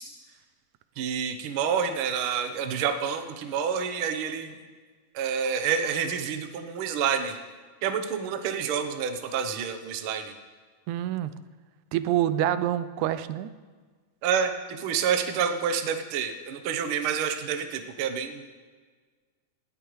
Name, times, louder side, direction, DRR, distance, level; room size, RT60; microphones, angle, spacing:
voice 1, 1.0-4.6 5.1-7.4 7.8-10.3 14.2-18.6, right 7 dB, 65° right, 6 dB, 1.3 m, -28 dB
voice 2, 10.9-11.3 11.9-13.5, right 12 dB, 85° right, 13 dB, 2.0 m, -26 dB
19.0 x 12.5 x 3.1 m, 1.5 s
omnidirectional pair, 3.4 m